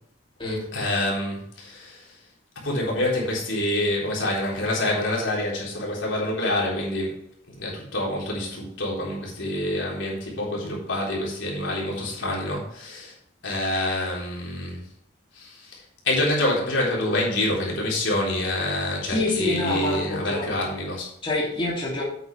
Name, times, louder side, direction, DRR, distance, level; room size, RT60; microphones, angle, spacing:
voice 1, 0.7-2.2 2.6-13.2 13.4-14.8 15.3-21.1, left 1 dB, 70° left, -3 dB, 3.8 m, -27 dB
voice 2, 19.1-20.5 21.2-22.0, left 2 dB, 25° left, -5 dB, 2.6 m, -26 dB
9.2 x 8.5 x 3.3 m, 0.71 s
head